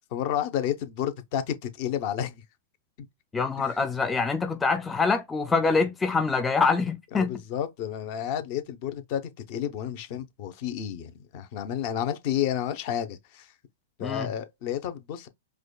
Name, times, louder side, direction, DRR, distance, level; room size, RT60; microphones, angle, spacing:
voice 1, 0.0-2.4 3.0-3.1 7.1-13.5 14.0-15.3, left 10 dB, 45° left, 0.7 m, -31 dB
voice 2, 3.3-7.4 14.0-14.3, left 4 dB, 10° left, 0.3 m, -25 dB
4.8 x 2.2 x 2.2 m
hypercardioid pair, 140°, 0 cm